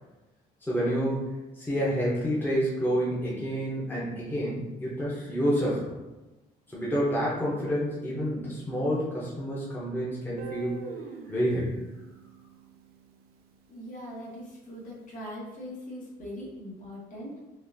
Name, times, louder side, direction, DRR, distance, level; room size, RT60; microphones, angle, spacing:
voice 1, 0.6-5.9 6.7-10.9 11.3-11.7, equal, 10° left, -7 dB, 0.9 m, -29 dB
Guitar, 10.4-13.3, right 5 dB, 65° right, 0.4 m, -43 dB
voice 2, 13.7-17.4, equal, 50° left, -5 dB, 1.3 m, -41 dB
4.1 x 2.6 x 2.6 m, 1.0 s
cardioid pair, 110°, 17 cm